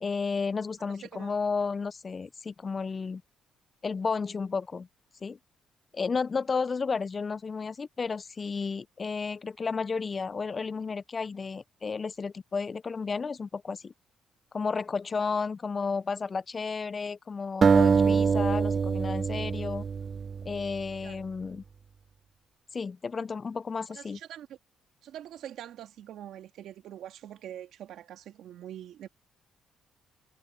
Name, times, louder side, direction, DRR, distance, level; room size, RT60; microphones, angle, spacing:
voice 1, 0.0-3.2 3.8-4.9 5.2-5.4 5.9-13.9 14.5-19.8 20.5-21.6 22.7-24.2, left 5 dB, 35° left, 0.4 m, -32 dB
voice 2, 0.8-1.3 21.0-21.2 23.9-24.6 25.0-29.1, right 11 dB, 80° right, 2.1 m, -44 dB
sound 1, 17.6-20.8, right 5 dB, 40° right, 0.4 m, -24 dB
cardioid pair, 90°, 0 cm